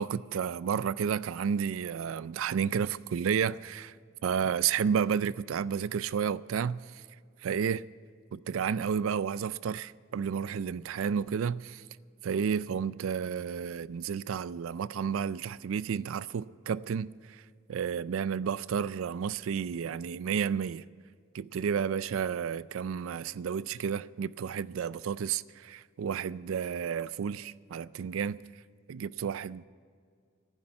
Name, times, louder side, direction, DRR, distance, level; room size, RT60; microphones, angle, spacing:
voice 1, 0.0-3.9 4.2-6.8 7.4-7.9 8.3-11.8 12.2-17.4 17.7-20.8 21.3-28.4 28.9-29.6, right 7 dB, 75° right, 0.4 m, -31 dB
11.5 x 9.8 x 9.8 m
head